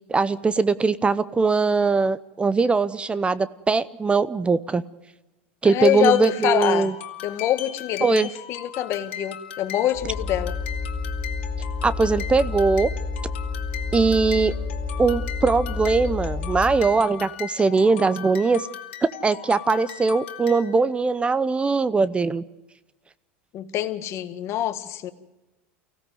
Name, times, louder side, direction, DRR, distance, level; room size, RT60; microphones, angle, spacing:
voice 1, 0.1-4.8 5.6-6.9 8.0-8.3 11.8-12.9 13.9-14.5 15.0-18.6 19.0-22.4, right 4 dB, 15° right, 17 dB, 0.7 m, -21 dB
voice 2, 5.6-6.9 7.2-10.6 23.5-25.1, left 12 dB, 50° left, 10 dB, 1.8 m, -25 dB
sound 1, 5.8-20.9, left 10 dB, 80° left, 2.3 m, -38 dB
sound 2, 9.9-16.8, left 4 dB, 15° left, 4.8 m, -30 dB
24.0 x 16.5 x 7.8 m, 1.1 s
hypercardioid pair, 100°, 6 cm